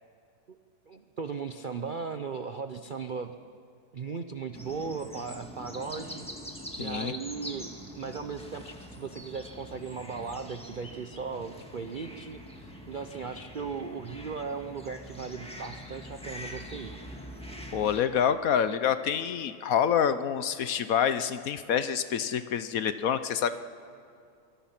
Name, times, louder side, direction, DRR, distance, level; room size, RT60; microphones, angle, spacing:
voice 1, 0.9-3.3 3.9-6.3 6.8-16.9 17.4-17.5, right 5 dB, 55° right, 8 dB, 0.5 m, -37 dB
sound 1, 4.5-18.0, equal, 5° left, 1.7 m, -44 dB
voice 2, 6.8-7.1 17.7-23.6, left 8 dB, 65° left, 12 dB, 1.1 m, -27 dB
23.5 x 23.5 x 5.9 m, 2.4 s
omnidirectional pair, 1.8 m